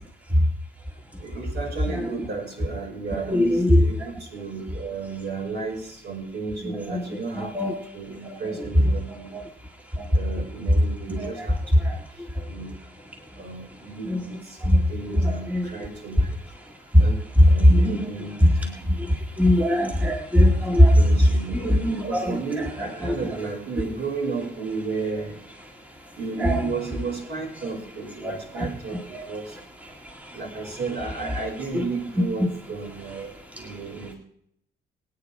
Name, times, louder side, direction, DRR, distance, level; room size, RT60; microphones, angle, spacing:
voice 1, 1.2-9.3 10.1-11.9 12.5-12.7 13.4-16.4 17.0-17.2 17.4-18.4 18.6-18.9 20.7-21.6 22.1-25.4 26.2-29.5 30.3-33.3 33.6-34.1, right 4 dB, 55° right, 0 dB, 5.9 m, -33 dB
voice 2, 3.3-3.8 6.9-7.7 9.3-9.4 10.0-10.1 11.1-11.3 11.8-12.0 14.1-14.2 14.6-14.8 15.1-15.7 16.9-17.0 17.7-18.1 18.4-18.5 19.4-21.0 21.5-22.4 23.0-23.1 26.4-26.6 28.2-28.7 29.1-29.3, equal, 5° right, 1 dB, 2.0 m, -20 dB
23.5 x 9.2 x 3.6 m, 0.71 s
cardioid pair, 90°, 20 cm